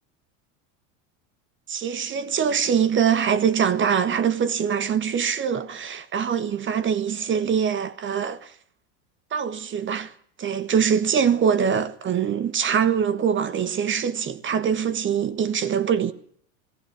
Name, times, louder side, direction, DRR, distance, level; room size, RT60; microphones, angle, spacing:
voice 1, 1.7-8.5 9.3-10.1 10.4-16.1, right 7 dB, 30° right, 1.4 m, -23 dB
18.5 x 18.0 x 9.7 m
supercardioid pair, 115°, 38 cm